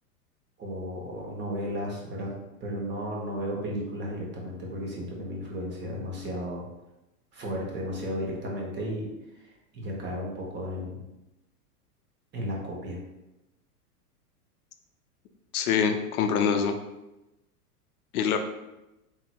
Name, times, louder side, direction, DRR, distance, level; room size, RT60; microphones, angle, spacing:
voice 1, 0.6-2.3 2.6-6.6 7.3-9.0 9.7-11.0 12.3-13.0, equal, 25° right, -2 dB, 0.8 m, -34 dB
voice 2, 15.5-16.8 18.1-18.4, left 7 dB, 70° left, 7 dB, 0.6 m, -24 dB
3.0 x 2.9 x 2.3 m, 0.96 s
hypercardioid pair, 100°, 47 cm